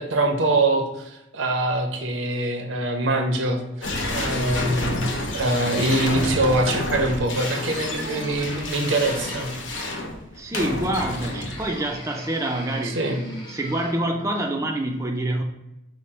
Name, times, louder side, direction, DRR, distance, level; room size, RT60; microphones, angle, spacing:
voice 1, 0.0-9.5 12.8-13.2, right 2 dB, 85° right, 4 dB, 0.7 m, -24 dB
sound 1, 3.8-12.0, left 2 dB, 80° left, 0.7 m, -29 dB
sound 2, 7.3-9.9 11.6-14.2, left 1 dB, 25° left, 0.9 m, -41 dB
voice 2, 10.3-15.4, right 1 dB, 15° right, 1 dB, 0.3 m, -27 dB
5.0 x 2.1 x 4.2 m, 0.91 s
head